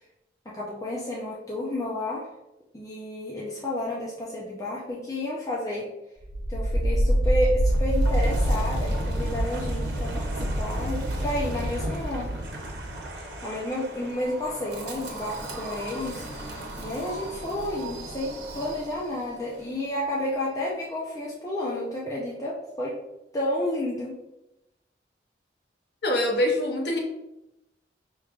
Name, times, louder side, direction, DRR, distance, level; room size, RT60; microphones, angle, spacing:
voice 1, 0.5-2.3 2.7-5.9 6.5-12.3 13.1-16.2 16.8-23.0 23.3-24.2, left 1 dB, 20° left, -6 dB, 0.6 m, -31 dB
Wind, 6.2-19.2, equal, 90° right, 0.8 m, -28 dB
voice 2, 26.0-27.0, left 1 dB, 70° left, 0 dB, 0.8 m, -24 dB
4.8 x 3.1 x 2.4 m, 0.91 s
head